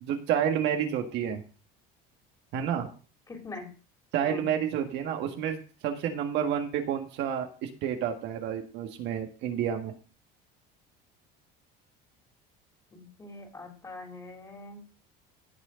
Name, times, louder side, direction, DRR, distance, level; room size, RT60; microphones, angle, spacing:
voice 1, 0.0-1.4 2.5-2.9 4.1-5.6 5.8-9.9, right 9 dB, 55° right, 4 dB, 1.7 m, -29 dB
voice 2, 3.3-3.7 4.2-4.5 12.9-14.8, left 3 dB, 15° left, 2 dB, 3.1 m, -43 dB
16.5 x 6.3 x 3.8 m, 0.36 s
cardioid pair, 150°, 21 cm